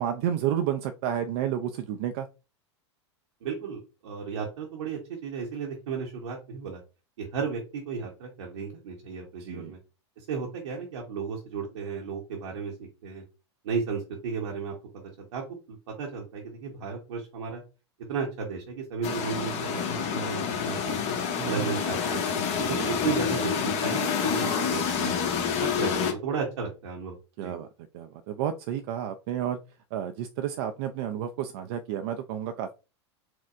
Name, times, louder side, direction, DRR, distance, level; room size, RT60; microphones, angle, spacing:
voice 1, 0.0-2.3 9.4-9.7 21.4-21.7 27.4-27.7 27.9-29.6 29.9-32.7, right 10 dB, 60° right, 6 dB, 0.4 m, -31 dB
voice 2, 3.4-6.8 7.2-9.8 10.3-12.7 13.0-13.2 13.6-15.4 16.0-17.6 18.1-21.1 21.4-25.1 25.6-27.5, right 5 dB, 80° right, -2 dB, 0.9 m, -34 dB
sound 1, 19.0-26.1, left 7 dB, 45° left, 1.1 m, -28 dB
4.3 x 2.1 x 2.4 m, 0.31 s
hypercardioid pair, 100°, 15 cm